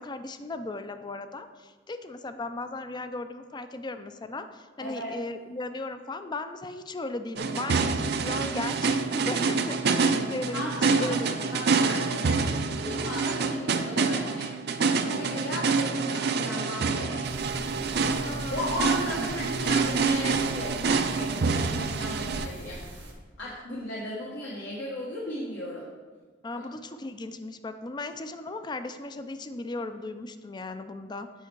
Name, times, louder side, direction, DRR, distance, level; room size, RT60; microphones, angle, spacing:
voice 1, 0.0-11.5 18.2-18.7 19.2-19.3 26.4-31.3, left 2 dB, 25° left, 9 dB, 0.4 m, -37 dB
voice 2, 4.8-5.1 10.5-14.7 15.0-17.3 17.7-18.0 18.5-23.0 23.4-25.9 26.5-26.6, left 1 dB, 70° left, -5 dB, 1.3 m, -36 dB
sound 1, 7.4-22.5, right 4 dB, 60° right, 0.5 m, -27 dB
sound 2, 17.2-23.1, right 1 dB, 85° right, 1.5 m, -42 dB
8.3 x 5.5 x 4.6 m, 1.4 s
head